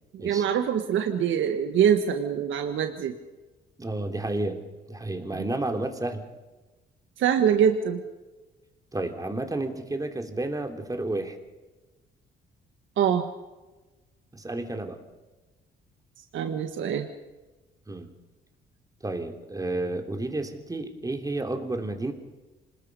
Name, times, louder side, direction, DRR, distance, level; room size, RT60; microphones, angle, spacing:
voice 1, 0.1-3.1 5.3-5.4 7.2-8.0 13.0-13.3 16.3-17.1, right 8 dB, 75° right, 6 dB, 1.6 m, -24 dB
voice 2, 3.8-4.6 4.9-6.3 8.9-11.4 14.3-15.0 17.9-18.1 19.0-22.1, right 2 dB, 15° right, 5 dB, 3.1 m, -31 dB
26.5 x 20.5 x 5.4 m, 1.2 s
cardioid pair, 90°, 20 cm